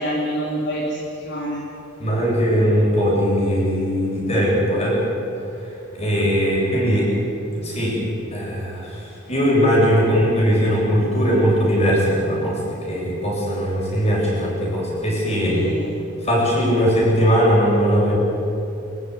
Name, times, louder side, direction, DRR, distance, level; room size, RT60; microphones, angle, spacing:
voice 1, 0.0-1.6 15.4-16.0, equal, 60° left, -3 dB, 3.0 m, -26 dB
voice 2, 2.0-5.0 5.9-7.1 7.5-8.0 8.3-9.0 9.3-15.7 16.2-18.2, equal, 30° left, -3 dB, 8.0 m, -19 dB
26.0 x 14.5 x 9.9 m, 2.8 s
head